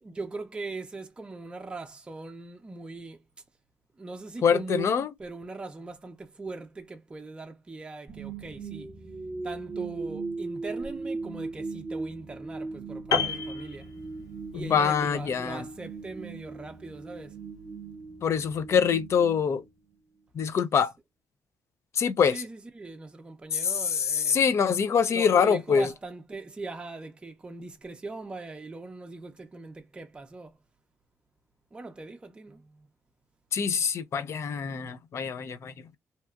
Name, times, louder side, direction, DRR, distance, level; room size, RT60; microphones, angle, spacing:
voice 1, 0.0-3.2 4.0-8.9 9.4-13.9 14.5-17.4 22.3-24.4 25.1-30.6 31.7-32.9, right 3 dB, 15° right, 0.5 m, -40 dB
voice 2, 4.4-5.1 14.5-15.6 18.2-19.6 20.3-20.9 21.9-22.4 23.5-25.9 33.5-36.0, left 7 dB, 50° left, 0.5 m, -25 dB
sound 1, 8.1-20.2, right 3 dB, 35° right, 0.9 m, -38 dB
Piano, 13.1-14.5 14.8-15.1, left 6 dB, 85° left, 0.7 m, -30 dB
2.8 x 2.3 x 2.3 m
cardioid pair, 135°, 6 cm